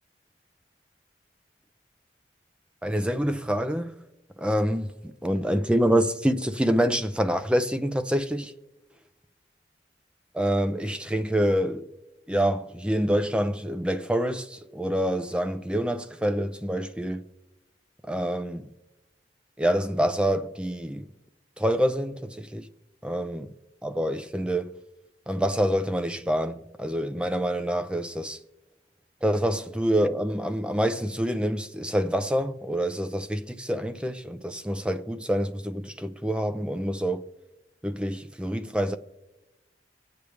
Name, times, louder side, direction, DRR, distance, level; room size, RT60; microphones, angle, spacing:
voice 1, 2.8-4.0 4.4-8.5 10.3-11.9 12.3-17.3 18.0-18.7 19.6-21.1 21.6-22.7 23.0-23.5 23.8-24.8 25.3-28.4 29.2-37.2 37.8-39.0, equal, 5° right, 0.5 m, -26 dB
24.5 x 8.6 x 3.3 m
head